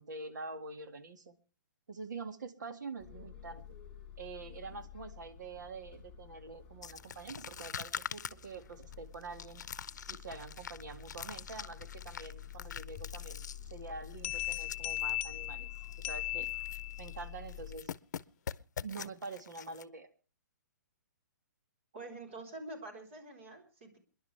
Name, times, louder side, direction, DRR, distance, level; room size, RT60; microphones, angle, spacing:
voice 1, 0.0-1.3 1.9-3.6 4.2-9.6 10.1-15.7 16.0-16.5 17.0-17.9 18.8-20.1, right 3 dB, 75° right, 8 dB, 2.1 m, -46 dB
sound 1, 3.0-17.8, left 9 dB, 10° left, 3.8 m, -49 dB
sound 2, 6.8-15.1 15.4-15.5 15.8-16.2 16.4-17.2 17.5-19.8, left 7 dB, 70° left, 0.7 m, -44 dB
sound 3, 14.2-17.2, left 16 dB, 35° left, 0.7 m, -37 dB
voice 2, 21.9-24.0, right 2 dB, 40° right, 3 dB, 4.1 m, -46 dB
28.5 x 11.0 x 3.4 m, 0.35 s
hypercardioid pair, 175°, 10 cm